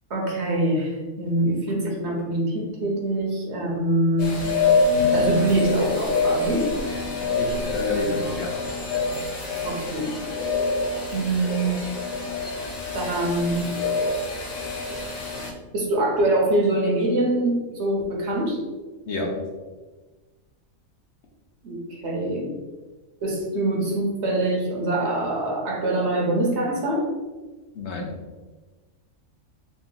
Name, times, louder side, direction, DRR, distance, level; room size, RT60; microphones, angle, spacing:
voice 1, 0.1-4.3 5.1-6.7 9.6-10.1 11.1-11.8 12.9-13.8 15.3-18.6 21.6-22.6 23.2-27.0, right 1 dB, 65° right, -1 dB, 1.0 m, -24 dB
sound 1, 4.2-15.5, left 3 dB, 40° left, 0.7 m, -26 dB
voice 2, 7.3-8.5 19.1-19.4 27.7-28.1, left 2 dB, 60° left, 0 dB, 1.0 m, -28 dB
3.7 x 2.3 x 3.8 m, 1.3 s
omnidirectional pair, 1.4 m